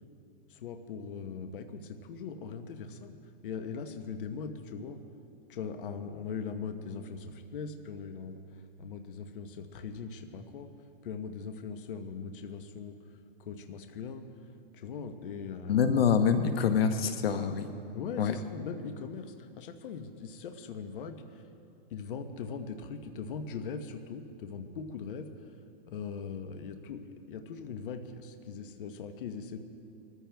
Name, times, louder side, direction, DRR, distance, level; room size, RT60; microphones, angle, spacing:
voice 1, 0.5-5.0 5.5-10.7 11.0-14.3 14.7-16.0 17.9-21.4 21.9-25.5 25.9-29.6, left 5 dB, 65° left, 7 dB, 1.1 m, -40 dB
voice 2, 15.7-17.7 18.2-18.3, left 7 dB, 85° left, 8 dB, 1.1 m, -25 dB
23.0 x 14.0 x 3.5 m, 2.5 s
supercardioid pair, 160°, 29 cm